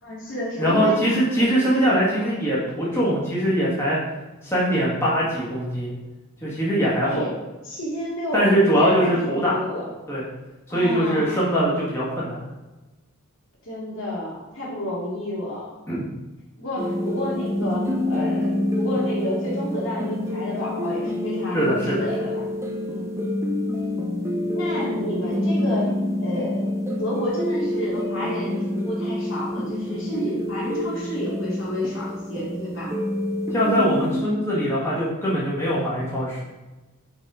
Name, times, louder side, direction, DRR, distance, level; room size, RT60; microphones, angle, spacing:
voice 1, 0.0-2.3 7.0-7.3 7.6-9.8 10.7-11.4 13.6-15.7 16.6-22.5 22.9-23.1 24.5-25.9 26.2-26.6 27.0-32.9, equal, 60° left, -5 dB, 2.4 m, -30 dB
voice 2, 0.6-4.0 4.4-6.0 6.4-7.1 8.3-9.5 10.1-10.2 10.7-12.4 15.9-16.1 21.5-22.0 33.5-36.4, equal, 10° left, -8 dB, 1.8 m, -22 dB
sound 1, 16.8-34.2, left 1 dB, 10° right, 0.7 m, -27 dB
5.5 x 4.9 x 4.9 m, 1.1 s
head